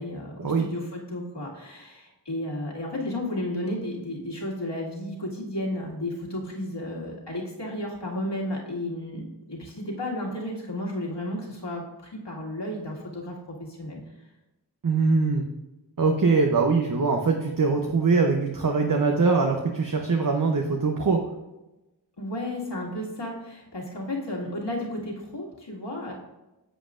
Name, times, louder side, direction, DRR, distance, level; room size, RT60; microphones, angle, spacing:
voice 1, 0.0-14.0 22.2-26.1, left 1 dB, 70° left, -4 dB, 2.1 m, -33 dB
voice 2, 14.8-15.4 16.0-21.2, right 4 dB, 50° right, 3 dB, 0.8 m, -22 dB
10.0 x 7.4 x 2.5 m, 1.0 s
wide cardioid pair, 40°, 43 cm